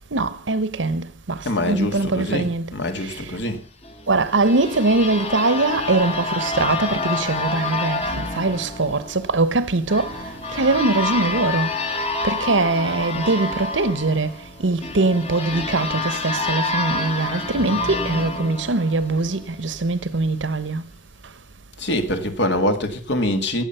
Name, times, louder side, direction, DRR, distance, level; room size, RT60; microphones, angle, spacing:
voice 1, 0.1-2.7 3.0-3.4 4.1-10.2 10.5-12.0 12.2-20.8, right 3 dB, 70° right, 1.0 m, -22 dB
voice 2, 1.4-3.6 10.2-10.7 21.8-23.6, left 1 dB, 60° left, 2.0 m, -25 dB
sound 1, 3.8-19.5, left 3 dB, 30° left, 1.4 m, -28 dB
17.0 x 7.3 x 5.7 m
head